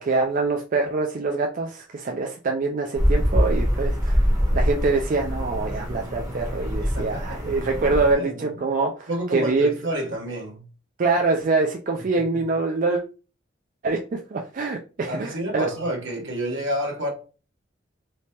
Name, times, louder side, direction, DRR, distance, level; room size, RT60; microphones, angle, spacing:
voice 1, 0.0-4.2 4.5-9.7 11.0-13.0 13.8-15.7, right 3 dB, 45° right, 0.4 m, -24 dB
sound 1, 3.0-8.1, equal, 20° right, 0.8 m, -24 dB
voice 2, 6.9-7.5 8.1-8.5 9.1-10.6 15.1-17.1, right 1 dB, 75° right, 1.3 m, -29 dB
3.3 x 3.1 x 2.8 m
head